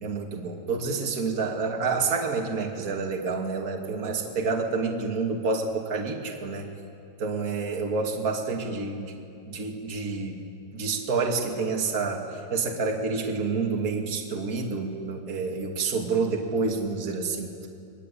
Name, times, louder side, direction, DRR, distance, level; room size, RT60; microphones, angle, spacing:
voice 1, 0.0-6.7 7.2-9.2 9.5-10.4 10.7-17.7, right 4 dB, 25° right, 1 dB, 2.3 m, -28 dB
30.0 x 23.0 x 8.6 m, 2.5 s
omnidirectional pair, 4.6 m